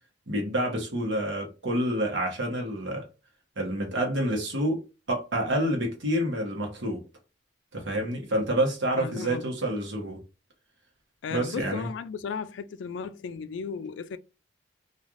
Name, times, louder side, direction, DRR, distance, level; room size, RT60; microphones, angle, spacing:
voice 1, 0.3-3.1 3.6-7.0 7.7-10.2 11.3-11.9, right 1 dB, 70° right, 1.0 m, -28 dB
voice 2, 9.0-9.5 11.2-14.2, left 6 dB, 70° left, 0.3 m, -35 dB
3.2 x 2.4 x 2.5 m
head